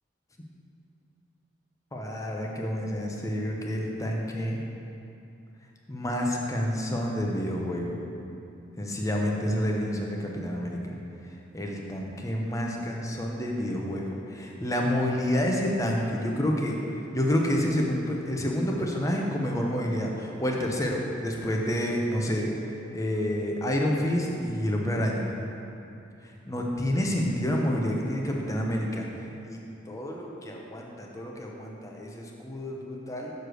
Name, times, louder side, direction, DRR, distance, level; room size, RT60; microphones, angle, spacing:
voice 1, 1.9-4.6 5.9-8.0 8.8-11.0 11.5-16.8 17.1-22.5 22.9-25.3 26.2-29.6 29.9-33.3, equal, 15° left, -1 dB, 0.7 m, -29 dB
6.5 x 4.9 x 6.3 m, 2.7 s
head